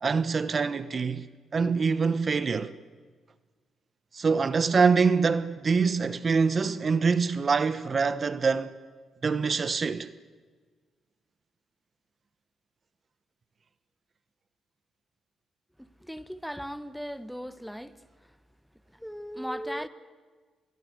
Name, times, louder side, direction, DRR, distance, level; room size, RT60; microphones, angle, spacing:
voice 1, 0.0-1.3 1.5-2.7 4.1-8.7 9.2-10.1, right 5 dB, 45° right, 1.2 m, -25 dB
voice 2, 16.0-17.9 19.0-19.9, equal, ahead, 1.3 m, -37 dB
27.0 x 20.5 x 8.1 m
hypercardioid pair, 50°, 0 cm